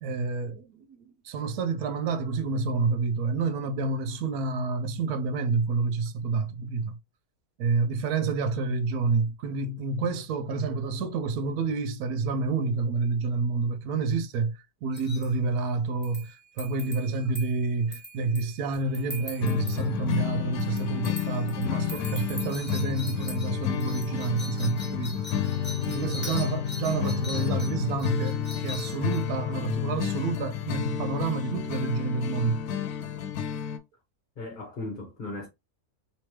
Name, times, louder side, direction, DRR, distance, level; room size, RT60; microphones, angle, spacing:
voice 1, 0.0-1.0 1.2-7.0 7.6-25.2 25.9-32.6, right 4 dB, 85° right, 1.1 m, -28 dB
sound 1, 14.9-15.3 16.0-19.8 20.6-29.2, left 1 dB, 10° left, 1.0 m, -42 dB
sound 2, 18.7-23.9, right 7 dB, 40° right, 0.4 m, -51 dB
sound 3, 19.4-33.8, left 9 dB, 85° left, 1.1 m, -31 dB
voice 2, 34.4-35.5, left 2 dB, 40° left, 1.0 m, -37 dB
3.3 x 3.1 x 2.9 m
omnidirectional pair, 1.6 m